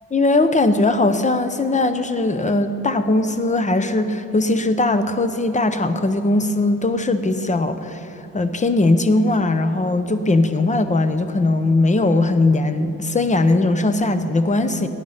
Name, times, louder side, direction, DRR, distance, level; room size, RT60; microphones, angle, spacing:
voice 1, 0.1-8.1 8.3-14.9, left 2 dB, 25° left, 9 dB, 0.7 m, -19 dB
16.5 x 9.5 x 5.7 m, 2.8 s
cardioid pair, 115°, 30 cm